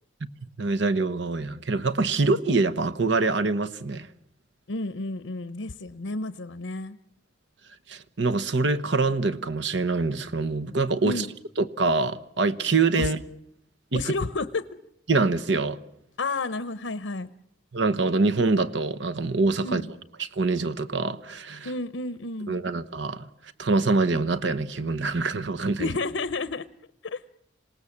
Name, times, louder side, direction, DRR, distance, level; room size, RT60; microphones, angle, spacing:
voice 1, 0.6-4.1 7.9-11.3 11.6-13.2 13.9-14.0 15.1-15.8 17.7-19.8 20.2-21.7 22.5-23.2 23.6-25.9, right 3 dB, 70° right, 1.0 m, -25 dB
voice 2, 4.7-7.0 11.0-11.3 13.0-13.1 13.9-14.7 16.2-17.3 19.6-19.9 21.6-22.5 25.8-26.7 27.0-27.2, left 3 dB, 85° left, 0.8 m, -31 dB
27.0 x 18.5 x 7.3 m
head